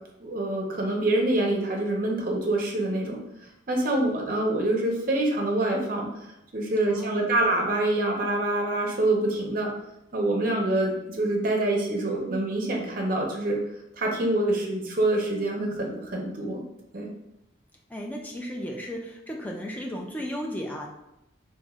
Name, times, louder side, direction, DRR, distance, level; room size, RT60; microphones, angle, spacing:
voice 1, 0.2-3.2 3.7-6.1 6.5-9.7 10.1-13.6 13.9-16.6 16.9-17.1, right 1 dB, 45° right, 0 dB, 0.6 m, -26 dB
voice 2, 6.9-7.3 17.9-20.9, equal, 10° left, 0 dB, 0.3 m, -35 dB
3.0 x 2.6 x 2.3 m, 0.86 s
head